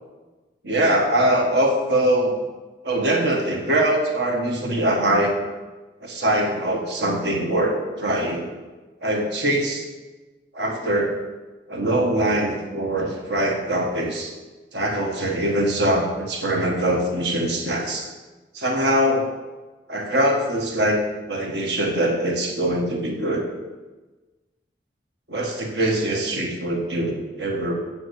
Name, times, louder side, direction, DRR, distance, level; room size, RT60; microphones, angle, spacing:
voice 1, 0.6-2.3 2.8-5.4 6.0-8.5 9.0-9.8 10.5-11.2 11.7-14.3 14.7-18.1 18.5-19.3 19.9-23.5 25.3-27.7, right 1 dB, 80° right, 1 dB, 1.7 m, -22 dB
7.7 x 7.2 x 8.3 m, 1.2 s
head